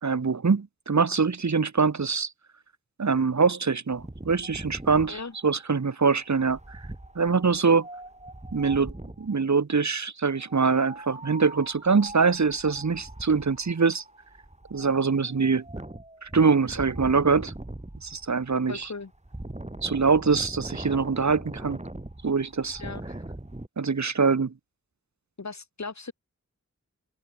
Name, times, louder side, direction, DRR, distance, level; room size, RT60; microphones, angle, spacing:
voice 1, 0.0-2.3 3.0-6.8 7.2-7.9 8.5-14.0 14.7-15.6 16.2-17.5 18.0-18.9 19.8-21.8 22.2-22.8 23.8-24.5, right 5 dB, 70° right, 2.0 m, -24 dB
Wind, 3.9-9.3 10.4-23.7, right 1 dB, 20° right, 6.2 m, -41 dB
voice 2, 18.7-19.1 22.8-23.2 25.4-26.1, left 4 dB, 65° left, 5.1 m, -37 dB
cardioid pair, 45°, 30 cm